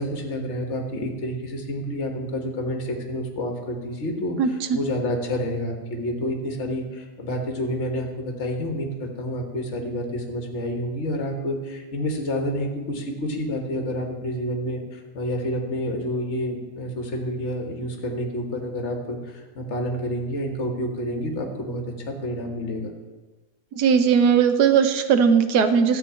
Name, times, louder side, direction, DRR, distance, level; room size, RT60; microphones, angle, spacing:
voice 1, 0.0-22.9, equal, 45° left, 3 dB, 1.7 m, -29 dB
voice 2, 4.4-4.8 23.7-26.0, right 6 dB, 85° right, 9 dB, 1.4 m, -18 dB
13.5 x 4.6 x 8.3 m, 1.3 s
omnidirectional pair, 1.7 m